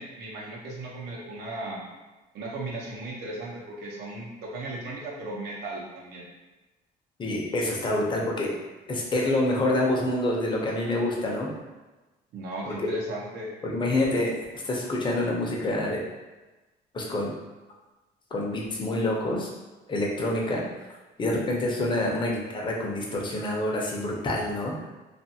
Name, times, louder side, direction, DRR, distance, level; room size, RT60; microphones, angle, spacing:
voice 1, 0.0-1.9 2.3-6.3 12.3-13.5, right 1 dB, 80° right, -4 dB, 0.8 m, -36 dB
voice 2, 7.2-8.5 8.9-11.5 12.6-12.9 13.6-14.3 14.6-16.0 16.9-17.3 18.3-19.5 19.9-20.6 21.2-24.7, left 1 dB, 30° left, -2 dB, 0.6 m, -27 dB
2.5 x 2.4 x 2.7 m, 1.1 s
cardioid pair, 110°, 17 cm